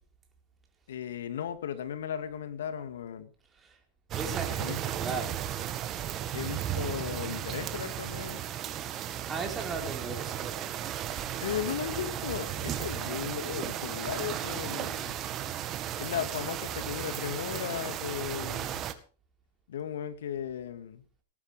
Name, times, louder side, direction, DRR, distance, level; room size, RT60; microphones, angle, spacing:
voice 1, 0.9-3.3 4.6-4.8 6.3-8.4 11.4-15.2 16.0-18.9 19.7-21.0, left 9 dB, 80° left, 2.3 m, -36 dB
voice 2, 4.1-5.5 9.0-10.7, right 4 dB, 15° right, 4.5 m, -37 dB
sound 1, 4.1-18.9, right 11 dB, 30° right, 1.8 m, -35 dB
18.5 x 12.0 x 5.2 m
hypercardioid pair, 135°, 0 cm